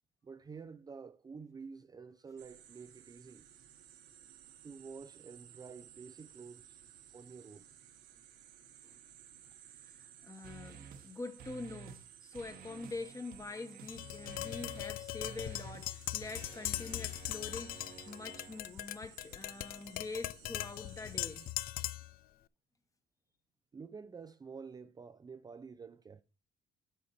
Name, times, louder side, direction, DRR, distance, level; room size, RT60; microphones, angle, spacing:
voice 1, 0.2-3.5 4.6-6.8 7.1-7.7 23.7-26.2, right 5 dB, 25° right, 0.5 m, -49 dB
sound 1, 2.4-21.5, right 10 dB, 75° right, 1.6 m, -58 dB
voice 2, 9.8-21.5, left 3 dB, 20° left, 1.2 m, -45 dB
sound 2, 10.4-11.1 11.4-12.1 12.3-18.6, right 6 dB, 60° right, 1.2 m, -53 dB
Tap, 13.9-22.2, left 15 dB, 60° left, 0.4 m, -40 dB
8.4 x 5.7 x 4.3 m
cardioid pair, 110°, 17 cm